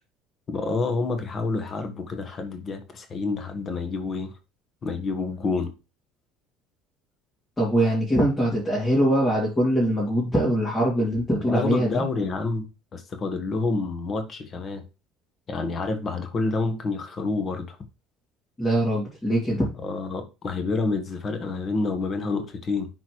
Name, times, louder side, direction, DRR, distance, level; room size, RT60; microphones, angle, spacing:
voice 1, 0.5-4.3 4.8-5.7 11.4-14.8 15.5-17.8 19.8-22.9, left 3 dB, 35° left, 1.3 m, -28 dB
voice 2, 7.6-12.0 18.6-19.7, equal, 10° left, 2.6 m, -22 dB
10.5 x 4.2 x 3.2 m
cardioid pair, 120°, 0 cm